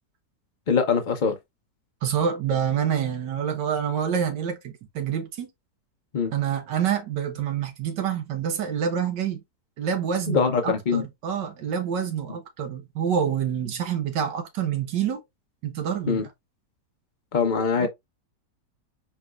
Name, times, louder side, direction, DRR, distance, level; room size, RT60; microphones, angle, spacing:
voice 1, 0.7-1.4 6.1-6.3 10.3-11.0 16.1-16.3 17.3-17.9, left 5 dB, 45° left, 0.6 m, -23 dB
voice 2, 2.0-5.5 6.3-9.4 9.8-15.2 15.6-16.3 17.8-17.9, right 8 dB, 85° right, 1.7 m, -27 dB
4.6 x 4.1 x 2.3 m
omnidirectional pair, 1.8 m